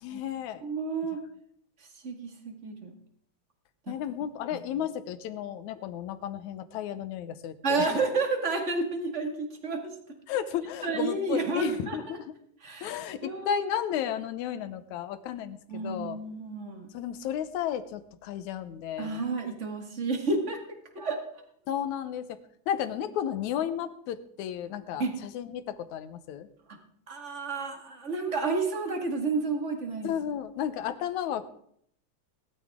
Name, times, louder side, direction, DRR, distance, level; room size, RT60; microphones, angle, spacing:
voice 1, 0.0-0.6 3.9-8.0 10.3-12.3 12.8-16.2 16.9-19.2 21.7-22.4 22.7-26.5 30.0-31.5, left 9 dB, 75° left, 12 dB, 2.2 m, -33 dB
voice 2, 0.6-1.2 2.0-2.9 3.9-4.0 4.5-4.6 7.6-9.9 10.8-12.2 12.6-13.6 15.7-16.9 19.0-20.6 20.9-21.2 25.0-25.2 27.1-30.1, right 3 dB, 25° right, 3 dB, 1.9 m, -31 dB
19.5 x 12.5 x 3.6 m, 0.69 s
omnidirectional pair, 3.5 m